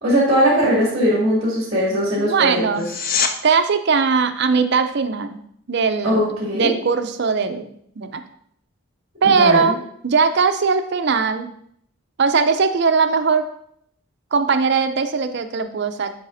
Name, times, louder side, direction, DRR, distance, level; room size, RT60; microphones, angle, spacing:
voice 1, 0.0-2.8 6.0-6.7 9.2-9.7, equal, 30° right, -5 dB, 2.3 m, -19 dB
voice 2, 2.2-2.9 3.4-5.4 5.7-8.2 9.2-9.8 10.0-11.5 12.2-13.5 14.3-16.1, right 5 dB, 50° right, 8 dB, 0.5 m, -19 dB
sound 1, 2.7-3.3 14.7-14.8, left 5 dB, 40° left, 0.5 m, -23 dB
10.5 x 4.9 x 2.6 m, 0.68 s
head